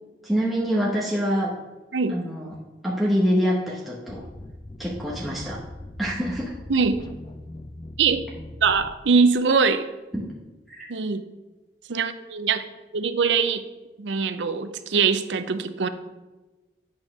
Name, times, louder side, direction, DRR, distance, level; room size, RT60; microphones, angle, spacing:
voice 1, 0.2-1.5 2.1-2.5 2.8-4.3 4.8-5.6 6.0-6.5 10.7-10.9, equal, ahead, -5 dB, 1.0 m, -25 dB
sound 1, 4.1-9.3, left 1 dB, 25° left, 0.4 m, -41 dB
voice 2, 6.7-7.0 8.0-8.2 8.6-9.9 10.9-11.2 11.9-12.6 12.9-13.6 14.0-15.9, right 5 dB, 85° right, 11 dB, 0.6 m, -22 dB
8.6 x 4.4 x 5.9 m, 1.2 s
head